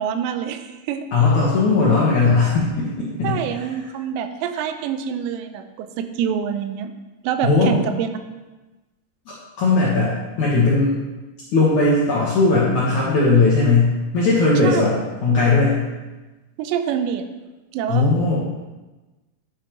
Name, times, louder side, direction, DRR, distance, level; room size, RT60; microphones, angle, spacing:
voice 1, 0.0-1.1 3.2-6.9 7.2-8.1 14.6-14.8 16.6-17.3 17.7-18.1, right 8 dB, 85° right, 9 dB, 2.8 m, -26 dB
voice 2, 1.1-3.7 7.4-7.7 9.6-11.0 11.5-14.9 15.2-15.8 17.9-18.4, left 3 dB, 75° left, -6 dB, 1.8 m, -18 dB
9.8 x 6.8 x 3.0 m, 1.2 s
omnidirectional pair, 5.0 m